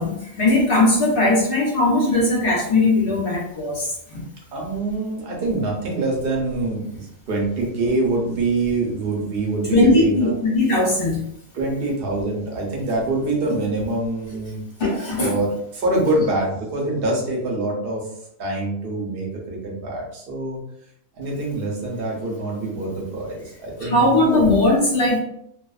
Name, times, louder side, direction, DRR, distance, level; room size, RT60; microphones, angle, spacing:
voice 1, 0.0-4.2 9.7-11.3 14.8-15.3 23.8-25.2, left 2 dB, 50° left, -4 dB, 0.8 m, -19 dB
voice 2, 4.5-10.3 11.5-14.6 15.2-18.1 18.4-20.6 21.2-24.4, right 2 dB, 50° right, -2 dB, 0.8 m, -25 dB
2.4 x 2.2 x 2.3 m, 0.72 s
omnidirectional pair, 1.4 m